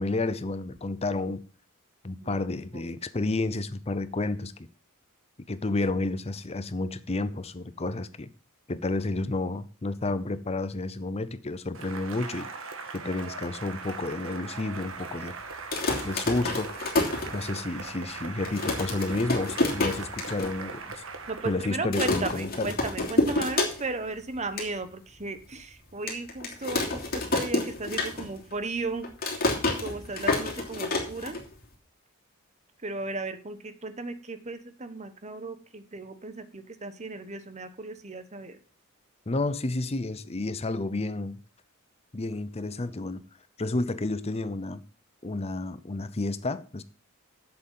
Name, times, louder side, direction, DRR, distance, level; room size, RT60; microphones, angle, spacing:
voice 1, 0.0-1.4 2.0-4.7 5.5-8.3 8.7-12.5 12.9-15.4 16.0-16.7 17.3-21.0 21.4-22.7 39.3-41.4 42.1-43.2 43.6-44.8 45.2-46.8, left 2 dB, 30° left, 0.7 m, -31 dB
Cheering / Applause, 11.7-21.8, right 4 dB, 65° right, 1.5 m, -40 dB
sound 1, 15.5-17.8 18.2-18.3 18.4-20.5 20.9-21.0 21.2-21.5 21.9-24.1 24.4-24.7 25.2-25.3 26.1-28.5 28.8-31.7, left 2 dB, 45° left, 2.9 m, -28 dB
voice 2, 21.3-29.1 29.8-31.4 32.8-38.6, right 3 dB, 30° right, 1.1 m, -35 dB
7.9 x 7.8 x 7.5 m
head